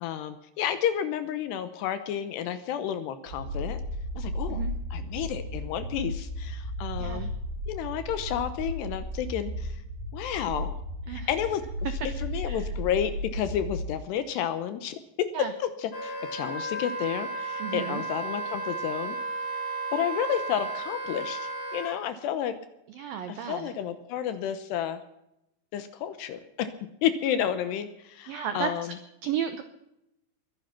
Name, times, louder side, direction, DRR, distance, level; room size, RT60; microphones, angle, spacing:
voice 1, 0.0-3.8 4.2-4.6 4.9-7.3 7.7-9.8 10.1-10.8 11.1-11.6 12.2-19.2 19.9-22.6 23.3-25.0 25.7-26.7 27.0-28.9, left 9 dB, 75° left, 11 dB, 2.7 m, -31 dB
sound 1, 3.3-13.9, equal, 75° right, 4.5 m, -34 dB
Wind instrument woodwind instrument, 15.9-22.0, right 3 dB, 45° left, 5.4 m, -34 dB
voice 2, 17.6-18.0 22.9-23.7 28.3-28.7 29.2-29.6, right 8 dB, 90° right, 8 dB, 2.0 m, -33 dB
22.0 x 10.5 x 5.9 m, 0.84 s
omnidirectional pair, 5.5 m